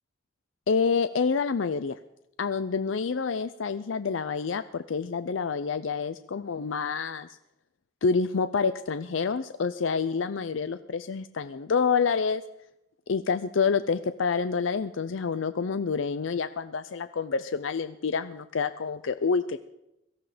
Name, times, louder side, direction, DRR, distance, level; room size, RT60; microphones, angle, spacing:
voice 1, 0.7-2.0 2.4-7.3 8.0-12.4 13.1-19.6, left 5 dB, 85° left, 12 dB, 0.5 m, -28 dB
17.5 x 14.0 x 5.1 m, 0.87 s
head